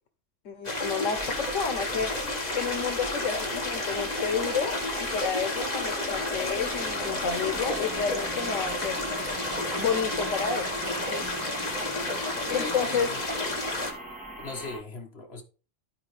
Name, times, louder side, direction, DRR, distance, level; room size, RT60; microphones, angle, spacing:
voice 1, 0.4-2.1 2.5-9.0 9.8-10.7 11.1-11.3 12.5-13.1, left 6 dB, 85° left, 1.3 m, -30 dB
sound 1, 0.6-13.9, left 2 dB, 35° left, 1.6 m, -31 dB
sound 2, 1.2-14.8, right 1 dB, 5° right, 2.9 m, -40 dB
voice 2, 12.5-13.2 14.4-15.4, left 3 dB, 55° left, 1.7 m, -38 dB
13.0 x 4.5 x 3.3 m
omnidirectional pair, 1.3 m